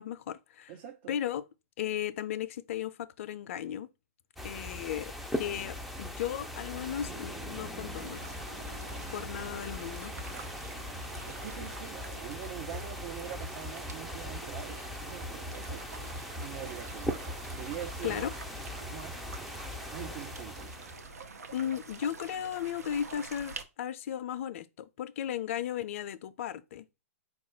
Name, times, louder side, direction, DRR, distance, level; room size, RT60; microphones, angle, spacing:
voice 1, 0.0-0.7 1.1-1.4 1.8-3.9 4.4-8.2 9.1-10.1 18.0-18.3 21.5-26.8, left 10 dB, 60° left, 0.4 m, -35 dB
voice 2, 0.7-1.2 11.4-18.3 18.9-19.4 19.9-20.7, right 10 dB, 45° right, 0.6 m, -44 dB
sound 1, 4.4-21.2, left 1 dB, ahead, 0.4 m, -40 dB
sound 2, 6.9-16.5, right 1 dB, 25° right, 1.1 m, -53 dB
sound 3, 7.9-23.6, right 4 dB, 85° right, 0.7 m, -47 dB
4.5 x 2.4 x 4.3 m
hypercardioid pair, 130°, 8 cm